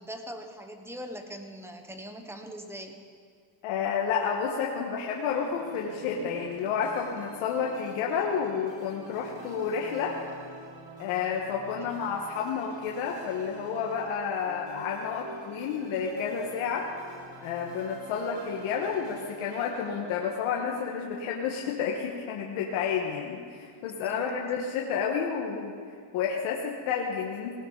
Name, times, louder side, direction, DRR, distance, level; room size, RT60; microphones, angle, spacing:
voice 1, 0.0-3.0 23.9-24.7, equal, 5° right, 5 dB, 1.0 m, -42 dB
voice 2, 3.6-10.2 11.0-16.9 17.4-25.7 26.1-27.5, left 6 dB, 75° left, -1 dB, 1.7 m, -30 dB
sound 1, 5.0-22.4, right 3 dB, 55° right, 4.4 m, -48 dB
19.0 x 17.5 x 4.1 m, 2.1 s
cardioid pair, 150°, 50 cm